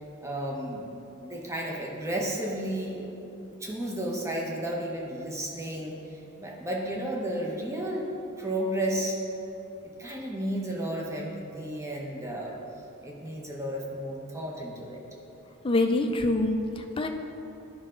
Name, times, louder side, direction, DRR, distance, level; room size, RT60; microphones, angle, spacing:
voice 1, 0.2-0.9 1.2-3.1 3.6-8.1 8.4-9.2 10.0-12.6 13.0-15.0, right 1 dB, 15° right, -2 dB, 1.0 m, -33 dB
voice 2, 15.6-17.1, left 2 dB, 25° left, 4 dB, 0.5 m, -25 dB
12.0 x 5.5 x 3.8 m, 2.9 s
head